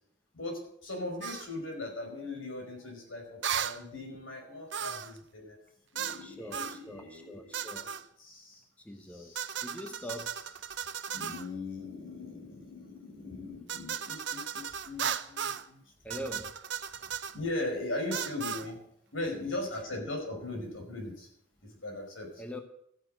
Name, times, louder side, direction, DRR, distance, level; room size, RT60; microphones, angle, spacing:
voice 1, 0.3-5.6 5.9-7.7 8.2-8.6 9.1-10.1 11.1-16.2 17.3-18.8 19.1-21.3 21.6-22.4, left 2 dB, 80° left, 3 dB, 5.2 m, -39 dB
sound 1, 1.2-1.5 3.4-3.8 4.7-5.2 5.9-6.2 6.5-6.8 7.5-8.0 9.3-11.5 13.7-15.7 16.1-17.4 18.1-18.7, right 8 dB, 60° right, 0.7 m, -36 dB
voice 2, 4.1-4.5 6.2-7.9 8.8-10.4 16.0-16.6 18.1-18.2 19.3-19.6 22.4-22.6, equal, 5° left, 6 dB, 0.9 m, -44 dB
14.0 x 9.3 x 7.8 m, 0.73 s
head